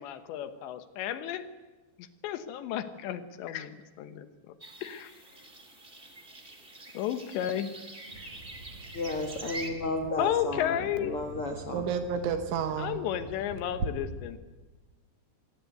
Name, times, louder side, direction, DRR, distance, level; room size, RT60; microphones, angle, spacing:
voice 1, 0.0-1.5 2.0-4.3 4.8-5.2 6.9-7.7 10.2-11.1 12.8-14.4, left 10 dB, 75° left, 10 dB, 3.2 m, -33 dB
sound 1, 4.6-9.7, right 2 dB, 20° right, 1.8 m, -45 dB
Bird vocalization bird call bird song, 8.1-13.9, right 3 dB, 45° right, 3.0 m, -43 dB
voice 2, 8.9-11.9, left 2 dB, 55° left, 5 dB, 1.6 m, -33 dB
voice 3, 11.7-13.0, right 7 dB, 80° right, 7 dB, 3.6 m, -30 dB
24.5 x 19.0 x 8.2 m, 1.2 s
omnidirectional pair, 5.4 m